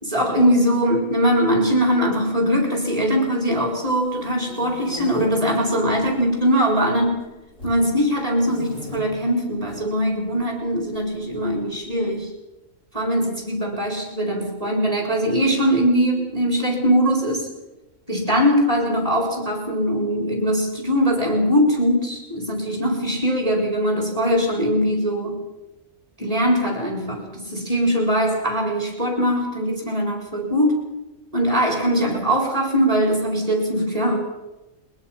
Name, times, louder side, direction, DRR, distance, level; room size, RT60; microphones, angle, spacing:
voice 1, 0.0-7.2 7.6-12.3 12.9-17.5 18.1-25.4 26.2-30.8 31.3-34.2, equal, 25° right, 1 dB, 4.4 m, -21 dB
sound 1, 3.9-5.3 5.9-6.5 6.8-7.8 8.4-9.0 9.6-9.8 10.9-11.9, left 1 dB, 65° left, 5.0 m, -38 dB
22.5 x 20.5 x 5.8 m, 1.0 s
omnidirectional pair, 1.4 m